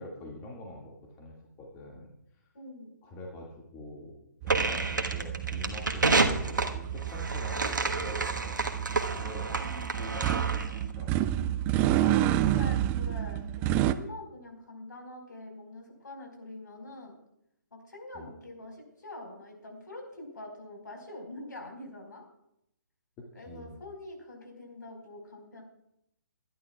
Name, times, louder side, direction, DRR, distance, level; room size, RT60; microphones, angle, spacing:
voice 1, 0.0-2.1 3.0-4.2 4.4-8.6 9.1-11.6 18.1-18.3 23.2-23.8, left 1 dB, 20° left, -2 dB, 2.1 m, -45 dB
voice 2, 2.5-2.9 9.6-10.6 12.0-17.2 17.7-22.2 23.3-25.6, left 2 dB, 75° left, 2 dB, 4.8 m, -45 dB
sound 1, 4.4-13.9, right 12 dB, 15° right, 0.4 m, -30 dB
sound 2, 4.5-10.8, right 3 dB, 80° right, 1.4 m, -30 dB
22.5 x 11.0 x 2.4 m, 0.79 s
figure-of-eight pair, 140°, 10 cm